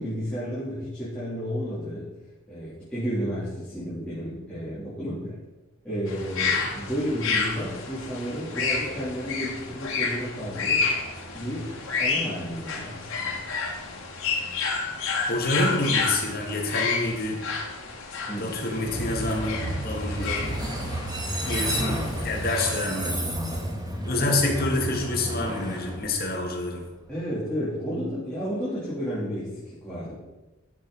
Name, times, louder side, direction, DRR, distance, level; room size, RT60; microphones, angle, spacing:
voice 1, 0.0-2.1 2.5-5.4 5.8-10.8 11.3-13.4 18.3-18.6 27.1-30.2, equal, 5° left, -12 dB, 3.3 m, -32 dB
sound 1, 6.1-22.8, left 4 dB, 75° left, 2.2 m, -30 dB
voice 2, 15.3-17.4 18.4-20.5 21.4-23.2 24.0-26.9, left 2 dB, 45° left, 0 dB, 2.5 m, -27 dB
Train, 18.8-26.7, right 1 dB, 20° right, 1.6 m, -31 dB
12.5 x 6.9 x 5.6 m, 1.1 s
head